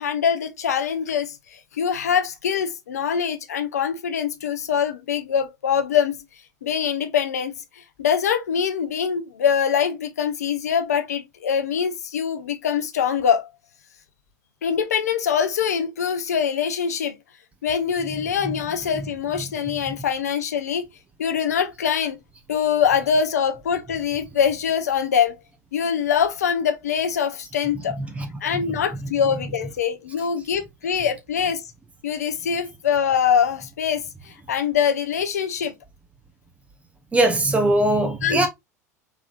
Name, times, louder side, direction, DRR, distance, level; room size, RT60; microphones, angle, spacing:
voice 1, 0.0-6.2 6.6-7.5 8.0-13.5 14.6-17.1 17.6-20.9 21.2-22.2 22.5-25.4 25.7-28.0 28.4-31.6 32.0-35.7 38.2-38.5, left 7 dB, 70° left, 0.8 m, -23 dB
voice 2, 37.1-38.5, right 1 dB, 15° right, 0.9 m, -20 dB
4.9 x 3.5 x 2.4 m
figure-of-eight pair, 80°, 9 cm